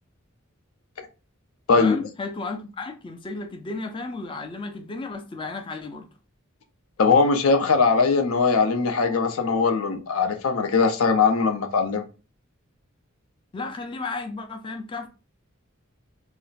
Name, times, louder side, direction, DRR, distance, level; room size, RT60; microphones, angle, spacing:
voice 1, 1.7-6.1 13.5-15.1, left 3 dB, 25° left, 0.3 m, -33 dB
voice 2, 7.0-12.0, left 4 dB, 85° left, 0.5 m, -20 dB
2.4 x 2.1 x 3.9 m
head